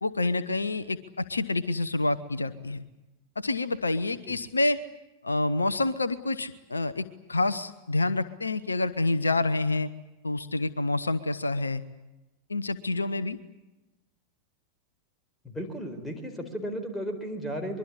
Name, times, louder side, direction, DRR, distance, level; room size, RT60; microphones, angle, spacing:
voice 1, 0.0-2.8 3.4-4.8 5.2-9.9 10.2-11.8 12.5-13.4, left 2 dB, 80° left, 15 dB, 0.9 m, -28 dB
voice 2, 15.4-17.8, equal, 10° left, 5 dB, 4.4 m, -34 dB
24.0 x 23.0 x 8.6 m, 1.0 s
figure-of-eight pair, 90°, 0 cm